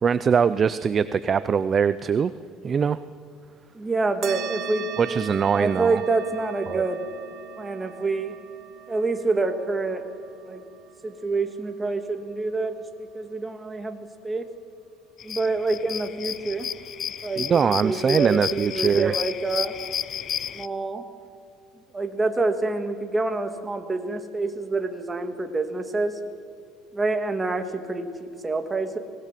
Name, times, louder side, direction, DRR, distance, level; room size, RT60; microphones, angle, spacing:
voice 1, 0.0-2.3 2.6-3.0 5.0-6.0 6.7-6.8 17.4-19.2, right 6 dB, 30° right, 14 dB, 0.5 m, -22 dB
voice 2, 3.7-5.2 5.5-7.0 7.6-8.3 8.9-10.0 10.5-10.6 11.0-14.4 15.2-16.7 17.2-19.7 20.5-21.0 21.9-26.2 26.9-29.0, right 3 dB, 15° right, 6 dB, 2.2 m, -27 dB
sound 1, 4.2-13.1, right 9 dB, 55° right, 1.8 m, -40 dB
sound 2, 15.2-20.7, left 9 dB, 45° left, 0.5 m, -32 dB
24.5 x 19.0 x 7.6 m, 2.3 s
cardioid pair, 115°, 0 cm